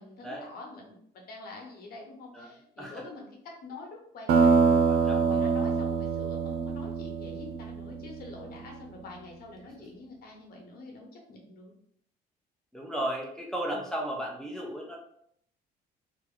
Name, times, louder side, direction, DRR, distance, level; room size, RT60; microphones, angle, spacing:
voice 1, 0.0-4.7 5.1-11.7 13.7-13.8, left 3 dB, 65° left, 0 dB, 1.3 m, -46 dB
voice 2, 2.3-3.1 4.8-5.4 12.7-15.0, right 1 dB, 5° left, -2 dB, 0.8 m, -35 dB
sound 1, 4.3-8.6, right 5 dB, 75° right, 0.5 m, -25 dB
3.0 x 2.9 x 3.8 m, 0.67 s
cardioid pair, 110°, 17 cm